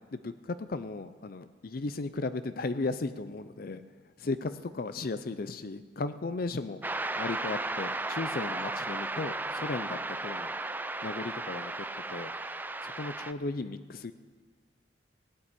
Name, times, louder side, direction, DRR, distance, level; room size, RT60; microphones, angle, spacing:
voice 1, 0.1-3.8 4.2-6.8 7.2-10.5 11.0-11.7 12.1-12.3 12.8-14.1, left 3 dB, 50° left, 12 dB, 0.5 m, -35 dB
sound 1, 6.8-13.3, right 2 dB, 10° right, 0.4 m, -35 dB
17.5 x 8.9 x 8.3 m, 1.5 s
head